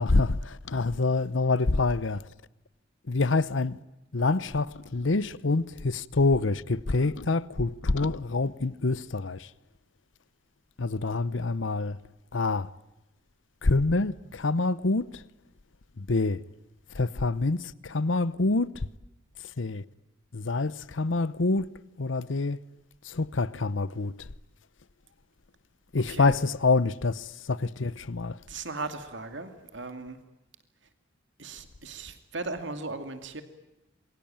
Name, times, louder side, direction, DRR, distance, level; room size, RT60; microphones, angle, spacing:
voice 1, 0.0-2.2 3.1-3.8 4.1-9.5 10.8-12.0 12.3-12.7 13.6-15.2 16.0-16.4 16.9-18.9 19.6-19.8 20.3-21.7 22.0-22.6 23.0-24.3 25.9-28.4, left 3 dB, 75° left, 0.9 m, -26 dB
voice 2, 28.5-30.2 31.4-33.4, right 3 dB, 70° right, 2.5 m, -37 dB
27.5 x 23.0 x 8.9 m
head